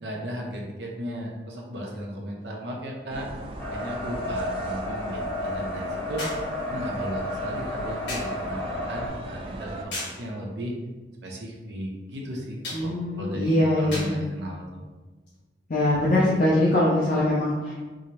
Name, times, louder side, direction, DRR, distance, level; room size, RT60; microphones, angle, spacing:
voice 1, 0.0-3.3 3.7-6.2 6.6-10.7 11.2-14.9, equal, 75° right, -1 dB, 0.7 m, -35 dB
sound 1, 2.4-2.5 6.2-6.5 8.1-8.4 9.9-10.2 12.6-12.9 13.9-14.2 15.3-15.4, left 1 dB, 80° left, 1.2 m, -35 dB
sound 2, 3.1-9.9, right 1 dB, 30° right, 0.3 m, -39 dB
sound 3, 3.6-9.1, left 1 dB, 5° left, 0.6 m, -32 dB
voice 2, 12.7-14.1 15.7-17.8, left 1 dB, 50° left, -6 dB, 0.5 m, -22 dB
4.8 x 2.0 x 2.9 m, 1.3 s
head